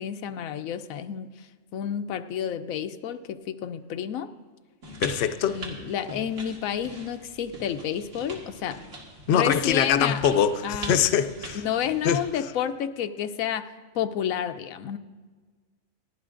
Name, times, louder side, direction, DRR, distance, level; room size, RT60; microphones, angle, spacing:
voice 1, 0.0-1.5 1.7-4.3 5.5-8.8 9.3-10.2 10.6-11.0 11.5-13.7 13.9-15.0, left 9 dB, 85° left, 1.0 m, -30 dB
sound 1, 4.8-12.3, right 2 dB, 65° right, 2.4 m, -41 dB
voice 2, 5.0-5.6 9.3-11.6 12.0-12.2, left 9 dB, 60° left, 0.8 m, -23 dB
28.0 x 11.0 x 2.5 m
omnidirectional pair, 1.4 m